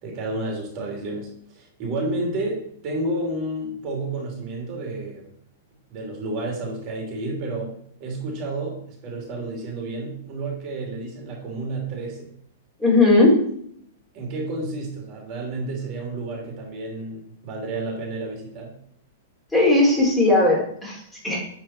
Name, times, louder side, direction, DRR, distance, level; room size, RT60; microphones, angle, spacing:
voice 1, 0.0-5.3 5.9-7.7 8.0-12.3 14.1-18.7, right 2 dB, 40° right, -1 dB, 2.9 m, -31 dB
voice 2, 12.8-13.4 19.5-21.4, left 2 dB, 5° left, -5 dB, 3.4 m, -18 dB
10.5 x 4.7 x 4.4 m, 0.68 s
hypercardioid pair, 145°, 0 cm